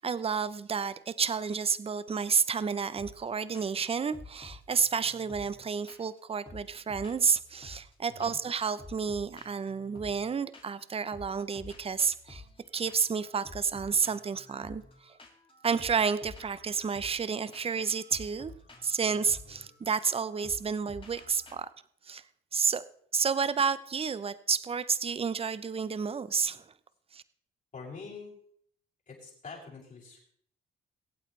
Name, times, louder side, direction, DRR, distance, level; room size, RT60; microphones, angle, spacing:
voice 1, 0.0-12.4 12.7-14.8 15.6-18.5 18.8-21.7 22.1-22.2 22.5-22.8 23.1-26.6 27.1-27.2, right 6 dB, 30° right, 15 dB, 0.7 m, -30 dB
sound 1, 3.0-3.3 3.5-3.9 4.1-6.2 6.4-7.9 8.2-8.5 8.8-10.8 11.1-21.5, left 3 dB, 25° left, 2.5 m, -51 dB
voice 2, 8.0-8.4 19.5-19.7 27.7-28.3 29.1-30.2, left 4 dB, 40° left, -6 dB, 6.9 m, -45 dB
23.0 x 8.5 x 3.3 m, 0.63 s
cardioid pair, 90°, 20 cm